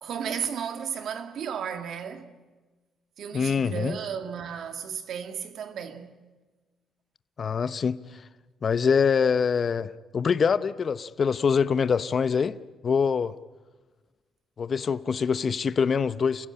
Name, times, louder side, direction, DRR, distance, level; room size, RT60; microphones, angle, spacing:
voice 1, 0.0-2.3 3.2-6.2, right 7 dB, 70° right, 2.0 m, -34 dB
voice 2, 3.3-4.0 7.4-8.0 8.6-12.6 12.8-13.3 14.6-16.5, left 6 dB, 45° left, 0.8 m, -24 dB
28.0 x 16.0 x 9.9 m
cardioid pair, 90°, 0 cm